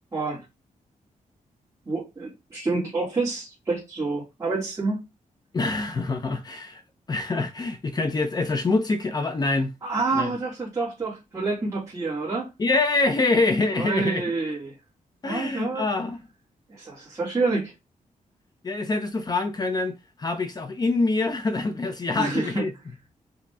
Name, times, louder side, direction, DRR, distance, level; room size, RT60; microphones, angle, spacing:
voice 1, 0.1-0.4 1.9-5.0 9.8-12.5 13.8-14.7 15.2-15.9 16.7-17.7 22.2-22.7, right 3 dB, 25° right, 2.0 m, -28 dB
voice 2, 5.5-6.8 7.1-9.7 10.1-10.3 12.6-14.2 15.2-16.2 18.6-22.7, left 3 dB, 30° left, 0.6 m, -25 dB
5.0 x 2.9 x 3.5 m
wide cardioid pair, 165°, 14 cm